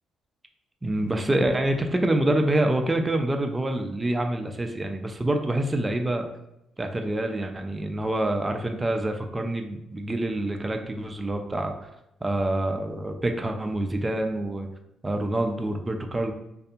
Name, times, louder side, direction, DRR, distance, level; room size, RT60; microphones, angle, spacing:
voice 1, 0.8-6.3 6.8-11.9 12.2-14.7 15.0-16.3, right 1 dB, 20° right, 5 dB, 0.3 m, -26 dB
2.6 x 2.5 x 2.3 m, 0.88 s
cardioid pair, 90°, 0 cm